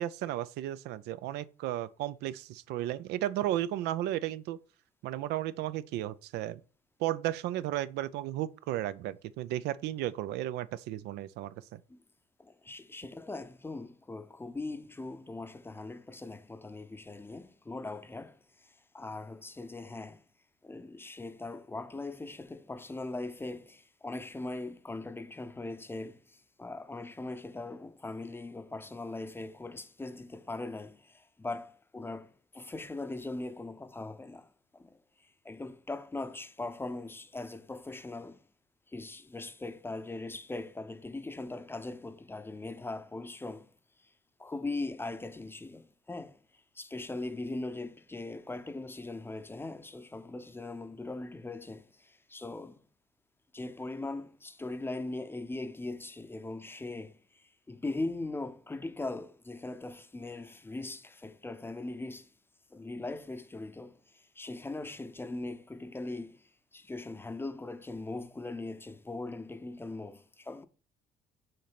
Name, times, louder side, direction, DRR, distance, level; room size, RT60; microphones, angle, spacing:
voice 1, 0.0-4.6 5.0-6.6 7.0-11.8, right 13 dB, 85° right, 0.4 m, -34 dB
voice 2, 12.4-18.4 18.9-20.2 20.6-26.2 26.6-34.5 34.8-35.0 35.4-38.4 38.9-43.7 44.4-46.4 46.8-52.8 53.5-57.2 57.7-62.3 62.7-64.0 64.4-66.4 66.7-70.7, left 2 dB, 15° left, 0.6 m, -40 dB
6.6 x 3.2 x 5.8 m
cardioid pair, 110°, 17 cm